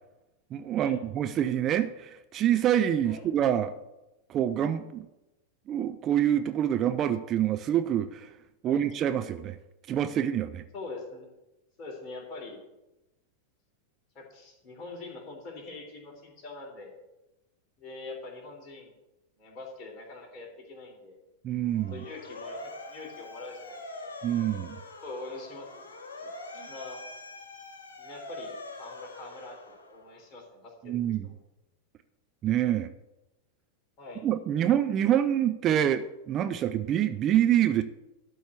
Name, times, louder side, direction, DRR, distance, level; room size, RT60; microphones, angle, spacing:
voice 1, 0.5-3.7 4.3-5.1 5.7-8.3 8.6-9.6 9.9-10.6 21.4-21.9 24.2-24.8 30.8-31.3 32.4-32.9 34.2-37.8, right 10 dB, 30° right, 9 dB, 0.5 m, -26 dB
voice 2, 10.7-11.3 11.8-12.6 14.2-16.9 17.8-18.9 19.4-21.2 21.8-24.1 25.0-25.8 26.2-27.0 28.0-29.6 29.9-31.3 34.0-34.2, left 3 dB, 30° left, 0 dB, 3.6 m, -43 dB
Motor vehicle (road) / Siren, 21.6-30.2, left 2 dB, 65° left, 1.7 m, -44 dB
12.5 x 4.7 x 8.3 m, 0.97 s
figure-of-eight pair, 90°, 0 cm